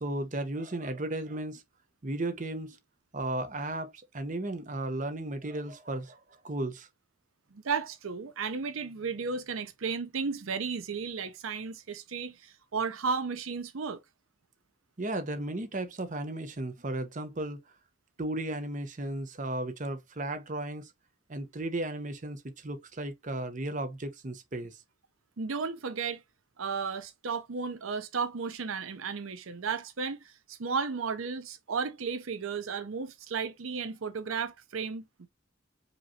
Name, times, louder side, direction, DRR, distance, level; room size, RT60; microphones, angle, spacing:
voice 1, 0.0-1.6 2.0-2.8 3.1-6.9 15.0-17.6 18.2-20.9 21.3-24.8, right 2 dB, 40° right, 0.8 m, -35 dB
voice 2, 7.5-14.0 25.4-26.2 26.6-35.3, right 5 dB, 85° right, 0.7 m, -34 dB
5.1 x 3.0 x 2.8 m
head